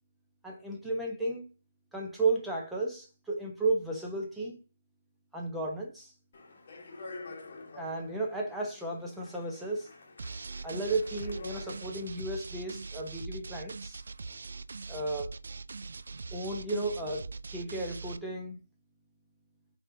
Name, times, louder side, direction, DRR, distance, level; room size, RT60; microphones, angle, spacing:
voice 1, 0.4-1.5 1.9-4.6 5.3-6.1 7.8-9.9 10.6-14.0 14.9-15.3 16.3-18.6, right 2 dB, ahead, 0.8 m, -33 dB
Speech, 6.3-12.1, left 2 dB, 40° left, 1.2 m, -48 dB
sound 1, 10.2-18.2, right 4 dB, 60° right, 0.3 m, -42 dB
5.4 x 3.6 x 2.6 m
figure-of-eight pair, 160°, 0 cm